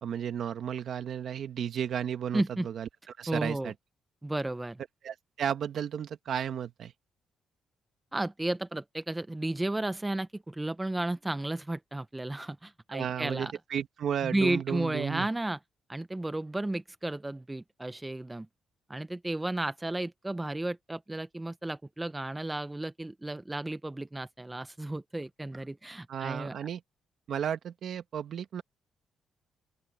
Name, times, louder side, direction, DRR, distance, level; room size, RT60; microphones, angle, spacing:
voice 1, 0.0-2.9 3.2-3.7 5.0-6.9 12.9-15.3 26.1-26.8 27.3-28.6, right 9 dB, 60° right, 1.4 m, -33 dB
voice 2, 2.3-2.7 3.3-3.7 4.2-4.8 8.1-13.5 14.2-15.6 15.9-18.5 18.9-26.6, right 2 dB, 10° right, 0.5 m, -33 dB
open air
cardioid pair, 140°, 0 cm